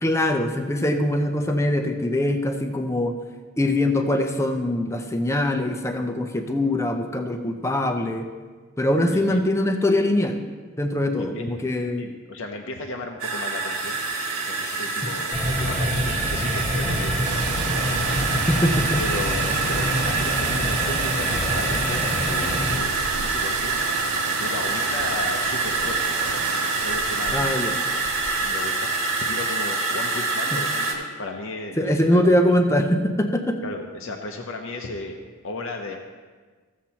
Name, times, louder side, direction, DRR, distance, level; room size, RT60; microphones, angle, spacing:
voice 1, 0.0-3.1 3.6-8.3 8.8-10.4 10.8-12.0 18.5-19.0 27.3-27.7 30.5-30.6 31.8-33.6, left 1 dB, 15° left, 5 dB, 0.5 m, -22 dB
voice 2, 9.1-9.4 11.1-11.5 12.0-14.0 14.4-18.2 19.0-23.7 24.0-26.4 26.8-27.8 28.4-32.6 33.6-35.2 35.4-36.0, left 2 dB, 60° left, 2 dB, 0.6 m, -35 dB
sound 1, 13.2-30.9, right 3 dB, 70° right, 1.5 m, -26 dB
sound 2, 15.3-22.8, equal, 30° right, 1.2 m, -27 dB
sound 3, 17.2-28.9, right 7 dB, 90° right, 0.4 m, -33 dB
15.0 x 7.3 x 2.9 m, 1.5 s
head